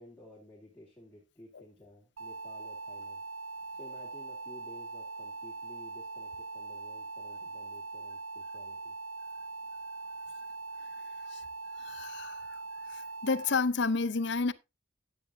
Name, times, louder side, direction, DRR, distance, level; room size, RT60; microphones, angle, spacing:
voice 1, 0.0-3.2 3.7-9.0, left 1 dB, 10° left, 2.8 m, -54 dB
sound 1, 2.2-13.6, right 3 dB, 90° right, 0.5 m, -42 dB
voice 2, 11.8-12.6 12.9-14.5, left 4 dB, 60° left, 0.6 m, -31 dB
12.0 x 9.2 x 2.7 m
head